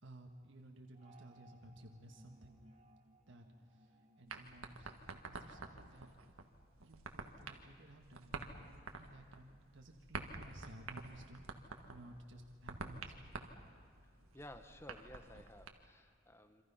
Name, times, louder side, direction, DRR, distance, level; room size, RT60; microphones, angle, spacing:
voice 1, 0.0-2.6 3.3-6.1 6.8-11.4 11.8-13.2 13.5-13.7, right 1 dB, 60° right, 3 dB, 1.6 m, -56 dB
sound 1, 0.9-5.6, right 1 dB, 30° right, 1.9 m, -66 dB
sound 2, 4.3-15.7, right 3 dB, 85° right, 1.7 m, -50 dB
voice 2, 14.3-16.6, left 1 dB, 10° left, 9 dB, 1.1 m, -55 dB
27.5 x 25.5 x 5.7 m, 2.3 s
head